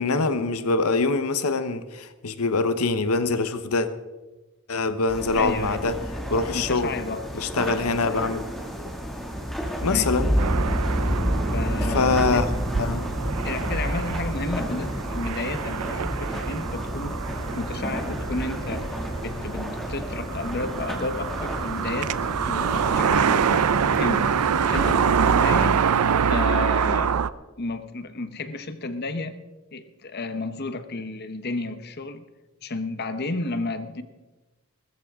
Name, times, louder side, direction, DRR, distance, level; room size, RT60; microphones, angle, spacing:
voice 1, 0.0-3.9 4.7-5.9 6.3-6.9 7.4-8.5 9.8-10.4 11.9-12.4 12.8-13.0, left 3 dB, 80° left, 11 dB, 1.0 m, -24 dB
sound 1, 5.1-24.9, equal, ahead, 2.2 m, -30 dB
voice 2, 5.3-5.8 6.5-8.3 9.9-10.1 11.5-12.5 13.4-17.2 17.5-18.9 19.2-22.1 22.5-24.3 24.7-25.9 26.3-27.1 27.6-29.4 29.7-32.2 32.6-34.0, left 2 dB, 45° left, 10 dB, 0.9 m, -32 dB
sound 2, 10.4-27.3, right 7 dB, 85° right, 0.5 m, -26 dB
20.0 x 13.5 x 3.6 m, 1.2 s
head